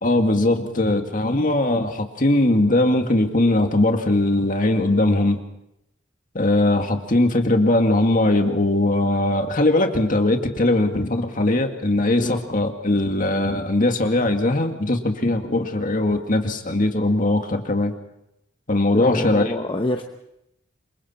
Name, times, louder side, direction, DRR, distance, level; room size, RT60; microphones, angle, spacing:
voice 1, 0.0-5.4 6.3-17.9 18.7-19.4, left 2 dB, 45° left, 4 dB, 2.1 m, -20 dB
voice 2, 18.9-20.0, left 1 dB, 25° left, 4 dB, 1.0 m, -25 dB
27.5 x 23.5 x 4.4 m, 0.82 s
head